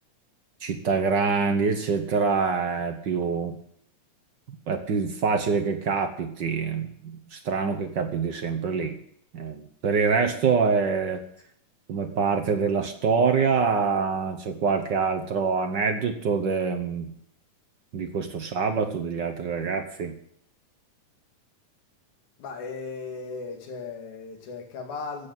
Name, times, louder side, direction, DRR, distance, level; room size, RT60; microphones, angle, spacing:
voice 1, 0.6-3.6 4.5-9.0 9.3-11.2 11.9-17.1 17.9-20.1, right 5 dB, 60° right, 6 dB, 1.1 m, -25 dB
voice 2, 22.4-25.3, left 4 dB, 70° left, 2 dB, 3.7 m, -36 dB
15.0 x 8.3 x 9.2 m, 0.67 s
omnidirectional pair, 3.6 m